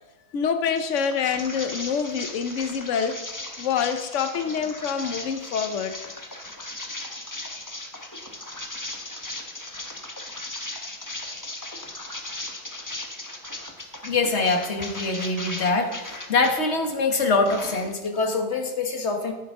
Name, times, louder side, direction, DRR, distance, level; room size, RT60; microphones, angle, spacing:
voice 1, 0.3-3.2 3.6-5.9, left 6 dB, 80° left, 8 dB, 0.6 m, -26 dB
sound 1, 0.8-16.5 16.9-18.2, left 1 dB, 15° left, 0.7 m, -37 dB
voice 2, 14.0-19.3, left 3 dB, 40° left, 3 dB, 1.5 m, -24 dB
12.0 x 9.7 x 3.6 m, 1.1 s
omnidirectional pair, 2.2 m